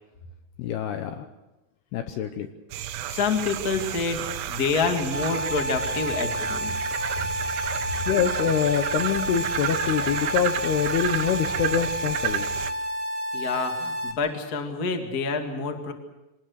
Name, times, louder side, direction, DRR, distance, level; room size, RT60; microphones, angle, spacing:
voice 1, 0.6-1.3 1.9-2.5 8.1-12.7, left 8 dB, 75° left, 7 dB, 2.5 m, -25 dB
sound 1, 2.7-12.7, right 11 dB, 70° right, 2.6 m, -31 dB
voice 2, 2.9-6.7 7.2-7.3 13.3-15.9, left 4 dB, 45° left, 4 dB, 1.2 m, -27 dB
sound 2, 5.1-14.1, equal, 20° left, 1.6 m, -30 dB
25.5 x 20.0 x 6.5 m, 0.99 s
omnidirectional pair, 5.7 m